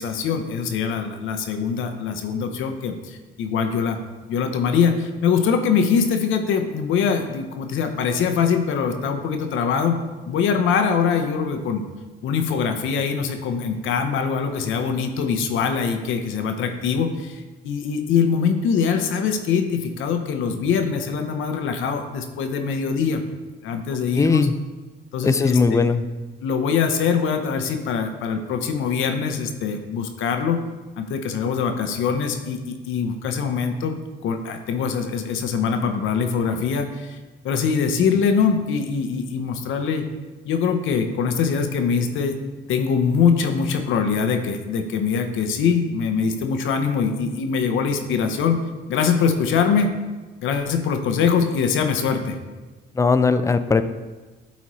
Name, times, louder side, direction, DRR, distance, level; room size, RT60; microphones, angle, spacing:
voice 1, 0.0-4.0 4.3-10.0 10.3-11.8 12.2-23.2 23.6-24.5 25.1-25.8 26.4-30.6 31.0-37.2 37.4-40.1 40.4-42.4 42.7-48.6 48.9-49.9 50.4-52.4, left 6 dB, 80° left, 6 dB, 0.8 m, -23 dB
voice 2, 24.1-24.5 25.2-26.0 52.9-53.8, left 4 dB, 15° left, 10 dB, 0.4 m, -19 dB
11.0 x 4.1 x 3.1 m, 1.2 s
cardioid pair, 90°, 20 cm